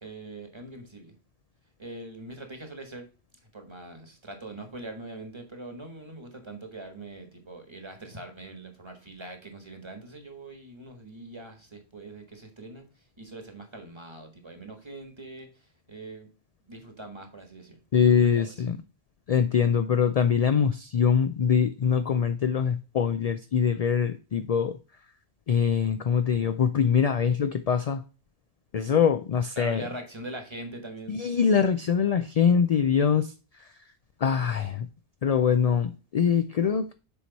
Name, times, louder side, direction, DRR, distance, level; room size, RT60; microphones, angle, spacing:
voice 1, 0.0-1.1 1.8-3.1 3.5-12.8 13.2-16.3 16.7-17.8 18.0-18.5 29.5-31.2, right 2 dB, 25° right, 4 dB, 1.5 m, -42 dB
voice 2, 17.9-18.8 19.3-24.8 25.5-28.0 28.7-29.9 31.1-33.3 34.2-34.9 35.2-36.9, left 7 dB, 55° left, 10 dB, 0.4 m, -23 dB
7.1 x 4.6 x 4.0 m, 0.33 s
omnidirectional pair, 1.1 m